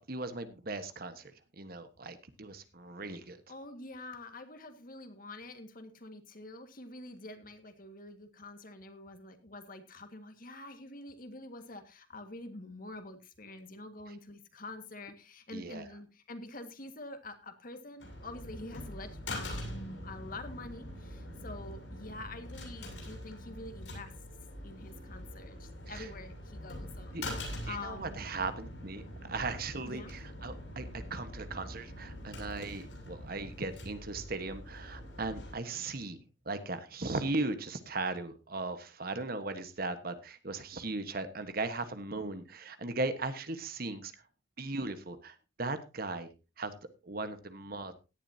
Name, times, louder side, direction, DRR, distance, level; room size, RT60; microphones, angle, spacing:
voice 1, 0.0-3.4 15.5-15.8 25.9-26.1 27.1-27.3 27.7-36.2 36.4-44.1 44.6-46.3 46.6-46.7 47.0-47.9, right 3 dB, 55° right, 10 dB, 1.4 m, -38 dB
voice 2, 3.5-24.1 24.6-28.3 29.9-30.1, left 2 dB, 50° left, 7 dB, 1.9 m, -46 dB
sound 1, 18.0-35.5, left 1 dB, 80° left, 6.8 m, -44 dB
17.0 x 11.0 x 2.8 m, 0.28 s
head